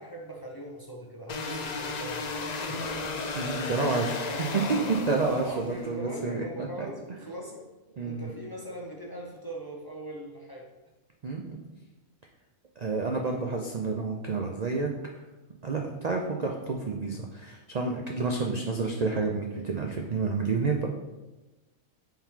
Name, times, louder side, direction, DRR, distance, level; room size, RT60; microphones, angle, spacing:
voice 1, 0.0-3.0 5.3-7.6 7.9-10.7, right 1 dB, 25° left, -1 dB, 0.5 m, -41 dB
sound 1, 1.3-5.8, left 3 dB, 75° left, 0.4 m, -34 dB
voice 2, 3.3-6.9 8.0-8.3 11.2-11.6 12.8-14.9 15.6-20.9, right 4 dB, 80° right, 1 dB, 0.3 m, -29 dB
7.2 x 3.8 x 3.6 m, 1.1 s
omnidirectional pair, 1.5 m